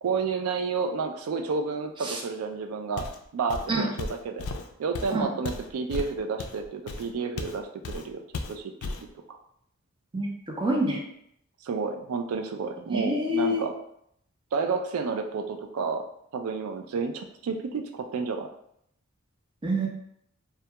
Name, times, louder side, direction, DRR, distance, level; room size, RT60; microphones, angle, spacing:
voice 1, 0.0-3.1 3.3-4.4 4.8-8.2 8.5-8.9 11.6-13.7 14.5-16.0 16.3-18.5, right 4 dB, 80° right, 5 dB, 0.3 m, -30 dB
Walk footsteps, 3.0-3.2 3.5-7.6 7.8-8.1 8.3-9.1, left 3 dB, 85° left, 0.3 m, -35 dB
voice 2, 10.1-11.0 12.9-13.6 19.6-19.9, equal, 25° right, -1 dB, 0.5 m, -26 dB
2.2 x 2.2 x 2.8 m, 0.72 s
head